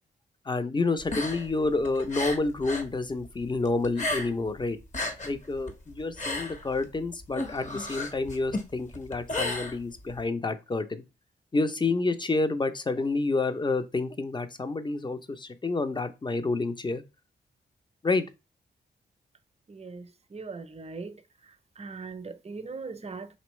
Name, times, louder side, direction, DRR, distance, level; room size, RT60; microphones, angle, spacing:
voice 1, 0.5-4.8 5.2-11.0 11.5-17.0 18.0-18.2, left 3 dB, 25° left, 0.6 m, -29 dB
sound 1, 1.0-2.9 3.2-4.5 4.8-10.2, left 2 dB, 40° left, 1.0 m, -34 dB
voice 2, 19.7-21.2 21.4-23.4, right 4 dB, 35° right, 0.6 m, -40 dB
4.3 x 3.0 x 3.1 m
supercardioid pair, 45°, 19 cm